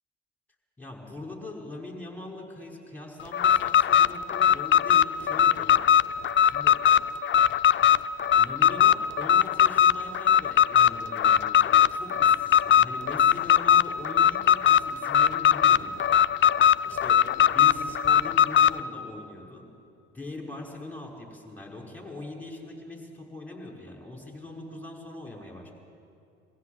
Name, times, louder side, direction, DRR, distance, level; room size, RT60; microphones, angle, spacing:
voice 1, 0.8-5.8 6.4-6.8 8.4-16.0 16.8-19.7 20.1-25.7, left 2 dB, 5° left, 0 dB, 5.6 m, -41 dB
Alarm, 3.3-18.8, left 10 dB, 35° left, 0.6 m, -20 dB
22.0 x 15.5 x 8.3 m, 2.5 s
hypercardioid pair, 60°, 34 cm